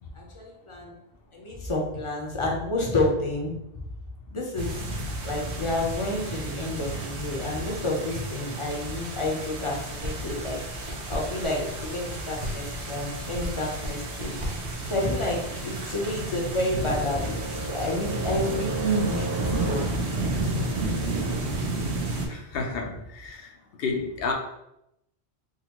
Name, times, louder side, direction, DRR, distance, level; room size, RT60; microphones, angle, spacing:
voice 1, 0.1-0.9 1.3-3.6 4.3-4.8 5.2-14.3 14.8-19.8 20.2-20.7, left 1 dB, 35° left, -2 dB, 0.7 m, -30 dB
sound 1, 4.6-22.3, right 2 dB, 80° right, 1.0 m, -32 dB
sound 2, 10.0-14.9, equal, 30° right, 0.7 m, -37 dB
sound 3, 16.3-21.4, right 1 dB, 55° right, 1.0 m, -36 dB
voice 2, 22.3-23.5 23.8-24.3, left 4 dB, 65° left, 2 dB, 0.8 m, -30 dB
3.8 x 2.4 x 2.9 m, 0.83 s
omnidirectional pair, 1.1 m